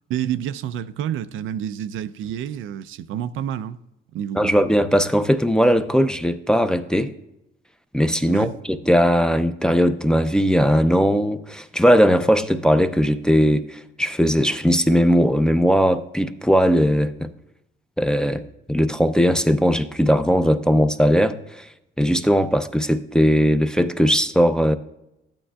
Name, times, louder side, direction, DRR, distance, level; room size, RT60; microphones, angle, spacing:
voice 1, 0.1-3.8 4.1-4.5 8.3-8.5, right 10 dB, 80° right, 0.4 m, -28 dB
voice 2, 4.4-7.1 7.9-17.3 18.0-18.4 18.7-21.7 22.0-24.8, equal, 5° left, 0.5 m, -19 dB
12.5 x 8.8 x 2.3 m
cardioid pair, 90°, 20 cm